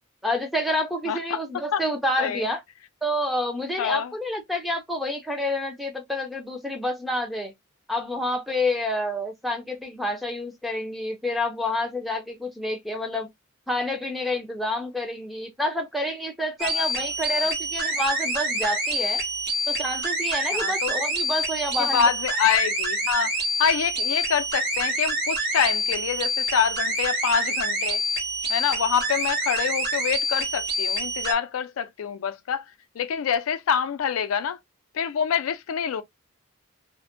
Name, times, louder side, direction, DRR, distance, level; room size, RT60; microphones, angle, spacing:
voice 1, 0.2-2.6 3.0-7.5 7.9-13.3 13.7-19.2 19.7-22.1, left 1 dB, ahead, 0.5 m, -28 dB
voice 2, 1.1-1.4 1.7-1.8 2.2-2.5 3.8-4.1 16.6-16.9 17.3-17.5 20.5-20.9 21.8-23.3 23.6-28.0 28.5-32.6 33.0-34.6 34.9-36.0, left 7 dB, 80° left, 0.4 m, -26 dB
sound 1, 16.6-31.3, right 1 dB, 45° right, 1.1 m, -27 dB
2.5 x 2.1 x 2.4 m
head